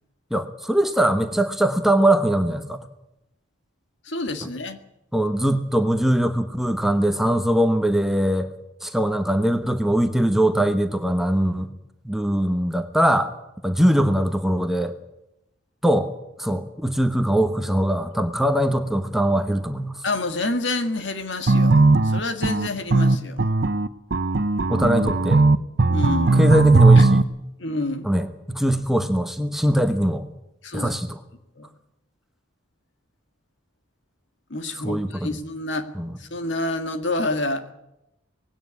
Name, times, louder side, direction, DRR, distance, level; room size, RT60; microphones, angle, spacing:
voice 1, 0.3-2.8 5.1-8.5 8.8-11.7 12.0-13.3 13.6-14.9 15.8-16.1 16.4-20.0 24.7-25.4 26.3-27.2 28.0-30.3 30.7-31.2 34.8-35.3 35.9-36.1, right 1 dB, ahead, 7 dB, 1.1 m, -21 dB
voice 2, 4.1-4.8 20.0-23.5 25.9-26.5 27.0-27.1 27.6-28.1 30.6-30.9 31.6-31.7 34.5-35.9 36.2-37.7, left 2 dB, 65° left, 8 dB, 1.8 m, -28 dB
sound 1, 21.5-27.2, right 3 dB, 55° right, 0.7 m, -17 dB
19.5 x 16.5 x 9.8 m, 0.89 s
head